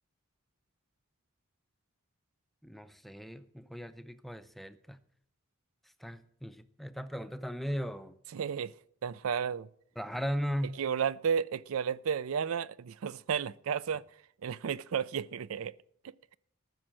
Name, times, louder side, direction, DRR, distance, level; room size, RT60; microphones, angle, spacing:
voice 1, 2.6-5.0 6.0-8.1 10.0-10.8, equal, ahead, 0.4 m, -37 dB
voice 2, 8.3-8.7 9.0-9.7 10.8-14.0 14.4-15.7, right 7 dB, 80° right, 0.4 m, -32 dB
14.0 x 6.2 x 7.5 m
head